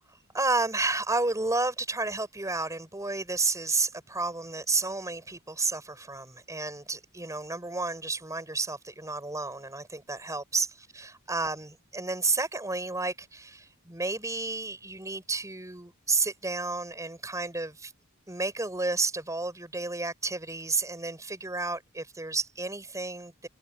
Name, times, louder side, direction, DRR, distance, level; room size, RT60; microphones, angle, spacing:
voice 1, 0.3-17.9 18.3-23.5, right 3 dB, 15° right, 4.5 m, -31 dB
head